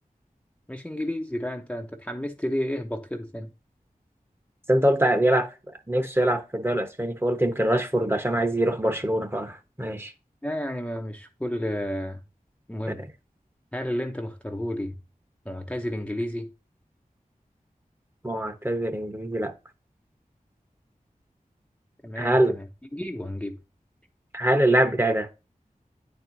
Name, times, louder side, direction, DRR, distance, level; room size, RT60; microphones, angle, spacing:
voice 1, 0.7-3.5 10.4-12.2 12.7-13.0 13.7-14.9 15.5-16.5 22.0-22.7 22.9-23.6, equal, 10° left, 0.7 m, -31 dB
voice 2, 4.7-5.5 5.9-10.1 18.2-19.5 22.2-22.6 24.3-25.3, right 1 dB, 15° right, 1.0 m, -23 dB
9.6 x 4.5 x 2.6 m
wide cardioid pair, 65°, 15 cm